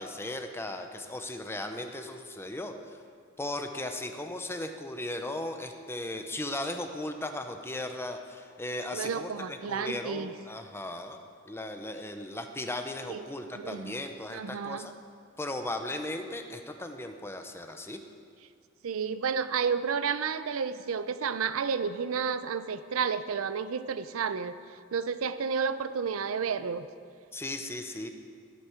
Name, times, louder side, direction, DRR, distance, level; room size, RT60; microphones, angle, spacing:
voice 1, 0.0-2.7 3.4-14.9 15.4-18.0 27.3-28.1, left 1 dB, 10° left, 6 dB, 0.7 m, -37 dB
voice 2, 8.9-10.3 13.1-13.2 13.5-14.0 14.3-14.9 18.8-24.6 24.9-26.9, right 6 dB, 80° right, 13 dB, 0.5 m, -31 dB
16.5 x 8.2 x 4.5 m, 2.1 s
head